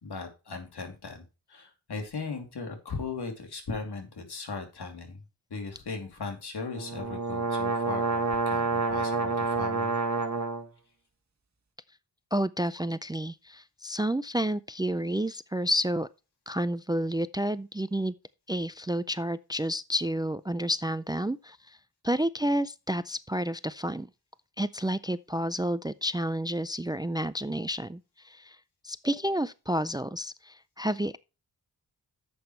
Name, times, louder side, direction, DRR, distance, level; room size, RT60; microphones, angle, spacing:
voice 1, 0.0-5.2 5.5-9.9, left 4 dB, 80° left, 3.0 m, -38 dB
sound 1, 6.7-10.6, right 3 dB, 45° right, 1.5 m, -28 dB
voice 2, 12.3-16.1 16.5-18.1 18.5-21.8 22.0-24.1 24.6-28.6 28.8-31.2, equal, 10° right, 0.4 m, -30 dB
11.0 x 7.9 x 3.2 m
wide cardioid pair, 90°, 39 cm